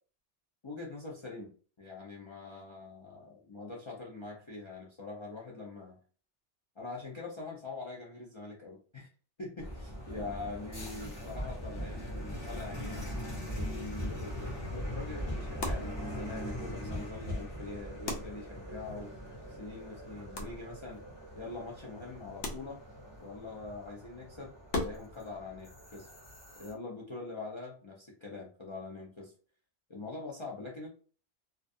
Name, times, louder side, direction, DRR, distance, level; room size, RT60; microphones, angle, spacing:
voice 1, 0.6-1.5 1.8-6.0 6.8-9.1 9.4-13.2 13.5-19.1 19.5-21.0 21.4-22.8 23.2-24.5 24.8-26.1 26.6-29.3 29.9-30.9, left 3 dB, 50° left, -1 dB, 0.3 m, -43 dB
sound 1, 9.6-26.7, equal, 25° left, 0.8 m, -41 dB
sound 2, 15.5-25.2, left 2 dB, 80° left, 1.0 m, -44 dB
2.3 x 2.3 x 2.5 m, 0.41 s
omnidirectional pair, 1.2 m